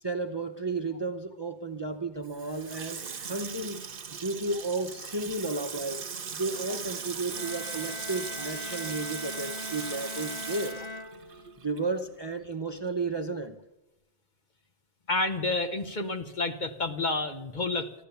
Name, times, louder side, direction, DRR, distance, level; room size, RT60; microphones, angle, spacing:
voice 1, 0.0-3.8 4.2-6.1 6.3-10.8 11.6-13.6, right 3 dB, 25° right, 8 dB, 0.8 m, -33 dB
Water tap faucet / Sink (filling or washing), 2.2-12.0 12.3-12.4, right 6 dB, 55° right, 1.1 m, -39 dB
Bowed string instrument, 7.3-11.7, left 2 dB, 65° left, 1.3 m, -41 dB
voice 2, 15.1-17.9, left 2 dB, 45° left, 7 dB, 1.1 m, -30 dB
15.5 x 12.5 x 6.9 m, 0.98 s
omnidirectional pair, 1.2 m